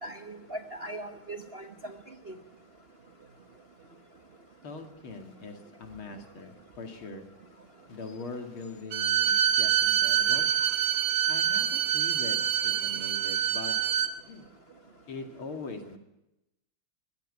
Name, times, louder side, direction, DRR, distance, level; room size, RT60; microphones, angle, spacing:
voice 1, 0.0-1.9 2.3-2.4, right 1 dB, 40° right, 5 dB, 0.9 m, -39 dB
voice 2, 4.6-7.3 7.9-10.5 11.3-13.8 14.3-14.5 15.1-16.0, left 3 dB, 70° left, 5 dB, 3.2 m, -42 dB
Bowed string instrument, 8.9-14.1, right 10 dB, 85° right, 2.2 m, -26 dB
22.5 x 15.5 x 9.8 m, 0.92 s
omnidirectional pair, 2.4 m